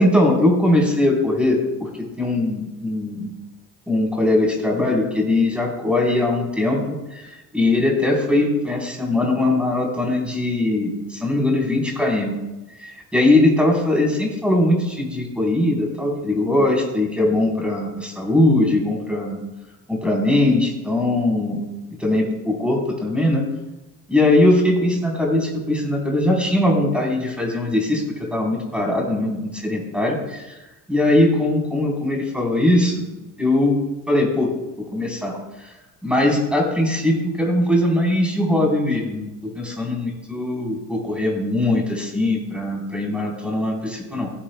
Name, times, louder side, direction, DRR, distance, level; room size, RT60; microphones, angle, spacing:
voice 1, 0.0-1.9 2.2-3.3 3.9-12.3 12.8-19.4 19.9-21.6 22.0-23.4 24.1-30.6 30.9-33.1 33.4-33.8 34.1-34.5 34.8-35.7 36.0-44.3, left 1 dB, ahead, -1 dB, 3.9 m, -20 dB
15.5 x 11.0 x 2.3 m, 1.0 s
figure-of-eight pair, 55°, 50 cm